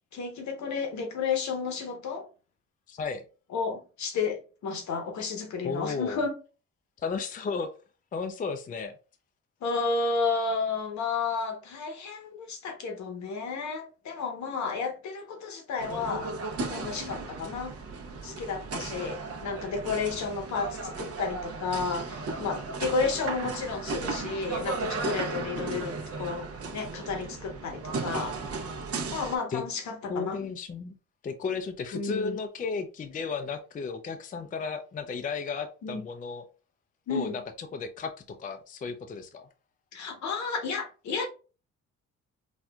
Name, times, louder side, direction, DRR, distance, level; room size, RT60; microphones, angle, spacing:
voice 1, 0.1-2.3 3.5-6.3 9.6-16.3 16.7-17.7 18.2-26.5 26.7-28.4 29.1-30.5 31.9-32.4 35.8-36.0 37.1-37.4 39.9-41.3, left 4 dB, 65° left, 1.0 m, -32 dB
voice 2, 2.9-3.2 5.6-6.2 7.0-7.7 8.1-8.9 29.5-29.6 30.1-31.0 31.2-36.4 37.1-37.3 37.6-38.1 38.4-39.5, left 5 dB, 30° left, 0.4 m, -34 dB
sound 1, 15.8-29.4, right 3 dB, 50° right, 0.8 m, -35 dB
4.2 x 2.4 x 2.3 m
cardioid pair, 90°, 30 cm